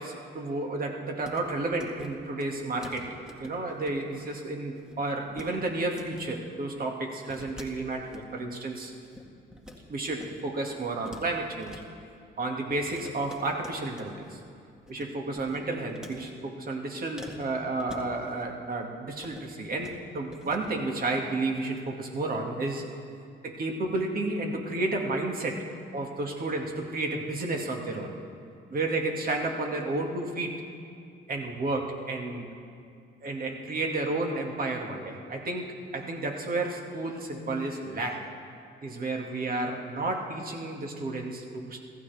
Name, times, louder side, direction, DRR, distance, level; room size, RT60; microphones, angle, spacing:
voice 1, 0.0-3.1 3.4-8.9 9.9-11.8 12.4-14.4 14.9-22.8 23.4-25.6 25.9-28.1 28.7-30.7 31.3-32.5 33.2-38.3 38.8-41.8, right 2 dB, 45° right, 1 dB, 2.3 m, -31 dB
sound 1, 1.2-1.4 1.7-2.1 2.4-2.5 2.8-3.9 4.2-4.4 4.7-5.5 5.8-6.2 7.2-8.2 8.7-9.8 10.1-10.4 10.7-11.8 12.9-14.4 14.7-15.1 15.3-16.3 17.2-18.5 19.1-19.4 19.7-20.0 20.3-20.7, left 1 dB, 5° right, 2.0 m, -46 dB
25.5 x 14.5 x 3.5 m, 2.4 s
cardioid pair, 90°, 20 cm